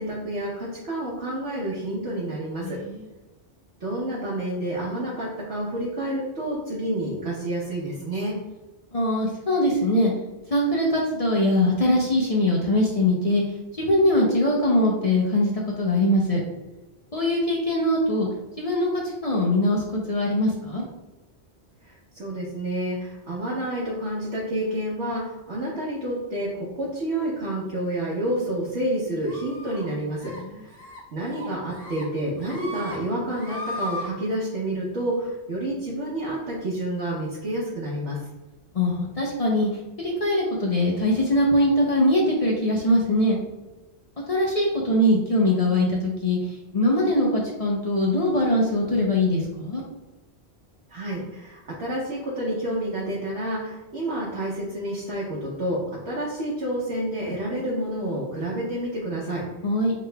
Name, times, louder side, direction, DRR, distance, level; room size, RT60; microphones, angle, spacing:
voice 1, 0.0-2.8 3.8-8.4 21.8-38.2 50.9-59.4, right 1 dB, 75° right, -6 dB, 1.1 m, -29 dB
voice 2, 2.6-3.0 8.9-10.1 10.5-13.4 13.7-16.4 17.1-18.3 18.6-20.8 30.3-30.6 38.7-39.7 40.0-43.4 44.3-49.8 59.6-59.9, left 1 dB, 40° left, -3 dB, 0.6 m, -22 dB
sound 1, 29.3-29.9 30.2-30.4 30.7-31.0 31.3-32.0 32.4-33.0 33.3-34.1, left 1 dB, 65° left, 1.2 m, -36 dB
4.8 x 3.5 x 2.2 m, 1.1 s
omnidirectional pair, 1.1 m